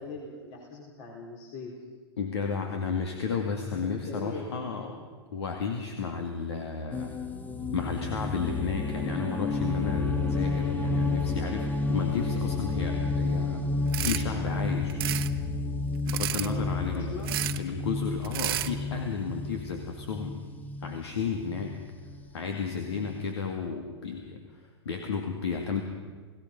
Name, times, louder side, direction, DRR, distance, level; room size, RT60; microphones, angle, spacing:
voice 1, 0.0-1.7 3.6-4.9 16.4-17.5, left 3 dB, 45° left, -1 dB, 4.3 m, -41 dB
voice 2, 2.2-5.0 5.3-7.2 7.7-13.6 14.0-15.1 16.1-17.2 17.6-20.4 20.8-21.8 22.3-25.8, left 5 dB, 70° left, 4 dB, 2.2 m, -33 dB
sound 1, 6.9-23.3, left 3 dB, 10° left, 1.4 m, -31 dB
sound 2, 13.9-14.2 14.9-15.3 16.1-16.5 17.2-17.6 18.2-18.7, right 15 dB, 55° right, 1.1 m, -31 dB
29.5 x 18.0 x 5.3 m, 1.5 s
hypercardioid pair, 105°, 14 cm